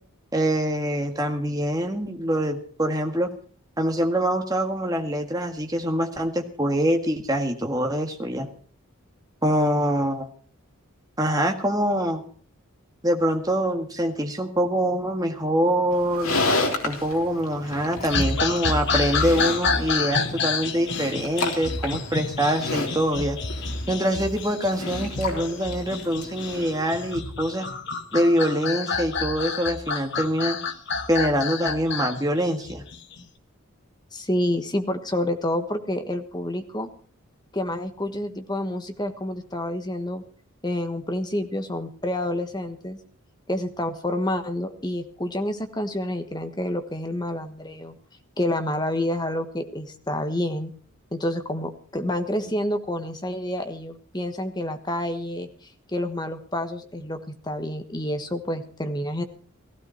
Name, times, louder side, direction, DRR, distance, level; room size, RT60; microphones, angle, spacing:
voice 1, 0.3-3.3 3.8-8.5 9.4-10.3 11.2-12.2 13.0-16.4 16.8-23.4 23.9-27.7 28.1-30.6 31.1-32.8, equal, 15° right, 4 dB, 1.7 m, -24 dB
Livestock farm animals working animals, 15.9-27.2, left 3 dB, 85° left, 3.3 m, -32 dB
sound 1, 18.1-33.2, left 4 dB, 55° left, 1.4 m, -29 dB
voice 2, 34.1-36.9 37.5-40.2 40.6-43.0 43.5-48.0 48.4-50.7 51.1-55.5 55.9-59.2, left 1 dB, 20° left, 7 dB, 1.3 m, -28 dB
16.0 x 15.5 x 4.5 m, 0.44 s
head